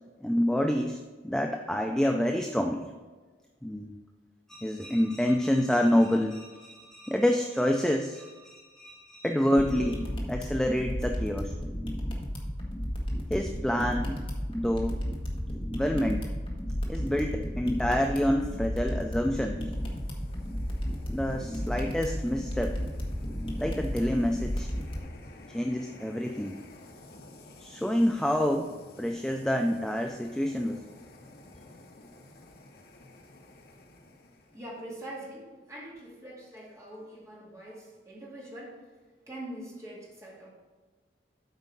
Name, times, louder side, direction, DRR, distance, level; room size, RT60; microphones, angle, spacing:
voice 1, 0.2-2.9 3.6-3.9 4.5-11.6 13.3-15.0 15.7-16.3 16.9-19.6 21.1-22.8 23.6-24.7 25.5-26.6 27.6-30.8, equal, 5° left, 3 dB, 0.3 m, -28 dB
sound 1, 9.6-25.0, equal, 30° left, 1.3 m, -33 dB
sound 2, 19.4-34.8, left 2 dB, 60° left, 0.9 m, -52 dB
voice 2, 34.5-38.8 39.3-40.5, right 1 dB, 15° right, -5 dB, 2.3 m, -43 dB
8.2 x 4.6 x 5.2 m, 1.3 s
head